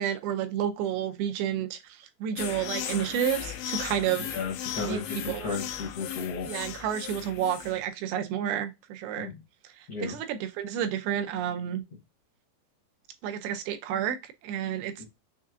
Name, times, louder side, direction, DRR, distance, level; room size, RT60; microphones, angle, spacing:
voice 1, 0.0-4.4 4.8-5.0 5.3-5.6 6.5-9.3 9.8-11.8 13.2-15.1, right 10 dB, 85° right, 2.6 m, -30 dB
sound 1, 2.4-7.9, left 10 dB, 85° left, 2.4 m, -36 dB
voice 2, 4.3-6.5 9.1-9.4 9.9-10.2 15.0-15.1, left 4 dB, 60° left, 1.5 m, -34 dB
6.4 x 2.6 x 2.4 m
omnidirectional pair, 4.4 m